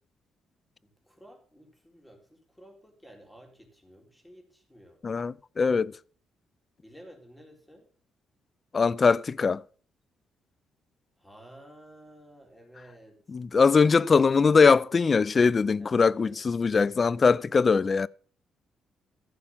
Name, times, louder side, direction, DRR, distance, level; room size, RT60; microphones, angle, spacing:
voice 1, 1.1-5.0 6.8-7.9 11.2-13.2 15.8-16.4, right 1 dB, 10° left, 4.2 m, -52 dB
voice 2, 5.0-5.9 8.7-9.6 13.3-18.1, left 5 dB, 35° left, 0.5 m, -21 dB
15.0 x 5.8 x 7.5 m
cardioid pair, 90°, 0 cm